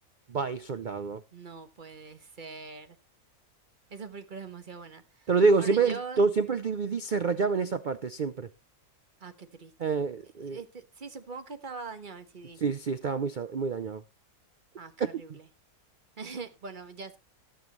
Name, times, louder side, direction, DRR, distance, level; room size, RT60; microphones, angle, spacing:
voice 1, 0.3-1.2 5.3-8.5 9.8-10.6 12.6-14.0, right 4 dB, 70° right, 0.4 m, -27 dB
voice 2, 1.3-3.0 3.9-5.3 5.6-6.2 9.2-9.9 10.4-12.6 14.8-15.5 16.2-17.2, right 5 dB, 35° right, 1.2 m, -42 dB
18.0 x 7.1 x 3.1 m
omnidirectional pair, 1.6 m